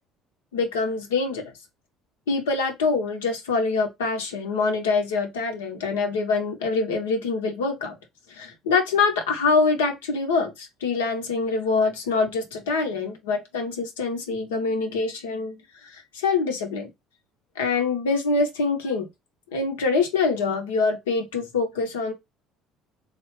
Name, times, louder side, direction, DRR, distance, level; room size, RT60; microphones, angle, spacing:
voice 1, 0.5-1.4 2.3-8.0 8.4-15.6 15.9-16.9 17.6-19.1 19.5-22.1, left 4 dB, 75° left, 0.7 m, -25 dB
3.2 x 2.4 x 3.0 m
figure-of-eight pair, 60°, 0 cm